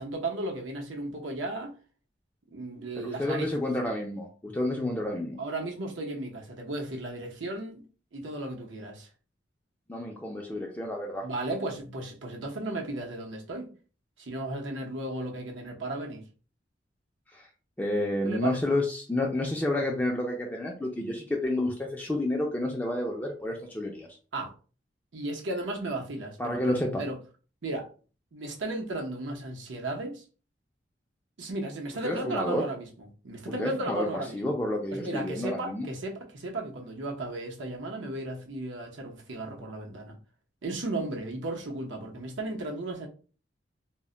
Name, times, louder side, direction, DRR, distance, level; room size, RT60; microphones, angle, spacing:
voice 1, 0.0-1.7 2.5-3.5 5.4-7.8 8.1-9.1 11.2-13.7 14.2-16.2 18.2-18.6 24.3-24.5 25.1-27.2 27.6-27.9 28.3-30.2 31.4-34.5 34.9-40.2 40.6-43.1, right 2 dB, 80° right, 0.7 m, -35 dB
voice 2, 3.0-5.4 9.9-11.3 17.3-17.5 17.8-24.1 26.4-27.0 32.0-32.7 33.6-35.9, left 1 dB, 10° left, 0.3 m, -30 dB
2.1 x 2.1 x 3.7 m
head